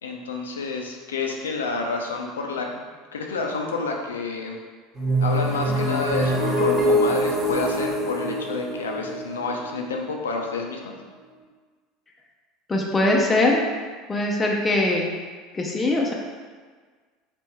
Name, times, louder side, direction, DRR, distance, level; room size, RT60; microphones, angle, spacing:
voice 1, 0.0-2.8 3.1-4.6 5.2-11.0, left 3 dB, 80° left, 2 dB, 0.4 m, -29 dB
sound 1, 4.9-10.7, equal, 25° right, 1.2 m, -24 dB
voice 2, 12.7-13.6 14.1-15.1 15.5-16.1, left 2 dB, 20° left, -1 dB, 0.5 m, -21 dB
3.3 x 3.3 x 3.0 m, 1.5 s
figure-of-eight pair, 75°, 0 cm